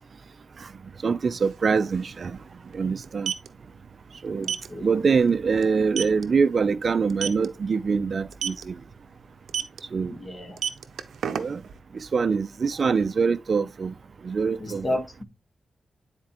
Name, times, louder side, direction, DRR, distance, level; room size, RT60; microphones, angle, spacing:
voice 1, 1.0-2.4 2.7-3.3 4.2-4.5 4.8-8.8 9.9-10.2 11.3-11.6 11.9-13.9 14.2-14.9, right 5 dB, 45° right, 0.5 m, -24 dB
sound 1, 1.4-1.5 1.8-2.0 3.0-3.5 4.4-4.7 5.1-5.3 5.6-5.7 6.0-6.2 7.1-7.5 8.3-8.6 9.5-9.8 10.4-11.7, right 8 dB, 90° right, 0.6 m, -28 dB
voice 2, 4.4-4.9 10.1-10.6 14.6-15.2, left 1 dB, 25° left, 1.4 m, -32 dB
9.5 x 4.4 x 3.0 m
wide cardioid pair, 125°, 0 cm